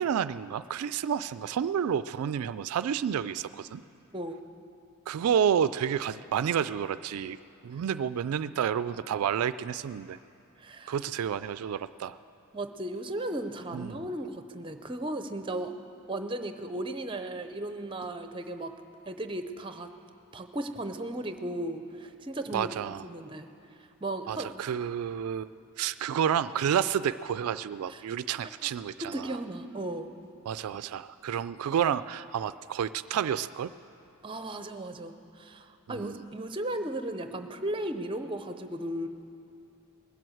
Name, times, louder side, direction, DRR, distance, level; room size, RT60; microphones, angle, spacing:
voice 1, 0.0-3.8 5.1-7.4 7.6-10.2 10.9-12.2 13.7-14.1 22.5-23.0 24.3-25.5 25.8-29.4 30.5-33.7 35.9-36.2, right 8 dB, 75° right, 15 dB, 0.3 m, -30 dB
voice 2, 10.6-11.0 12.5-15.7 16.1-18.7 19.1-19.9 20.3-22.8 23.0-23.5 24.0-24.5 27.9-28.0 28.6-28.7 29.0-30.1 34.2-39.1, right 1 dB, 20° right, 8 dB, 0.6 m, -35 dB
20.0 x 7.7 x 7.8 m, 2.7 s
head